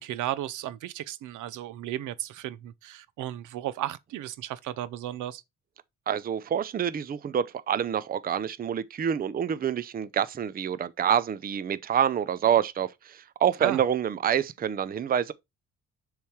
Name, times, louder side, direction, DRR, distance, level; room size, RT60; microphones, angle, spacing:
voice 1, 0.0-5.4 13.6-13.8, right 13 dB, 80° right, 0.6 m, -34 dB
voice 2, 6.1-15.3, right 9 dB, 30° right, 0.5 m, -27 dB
6.9 x 3.2 x 4.4 m
cardioid pair, 90°, 30 cm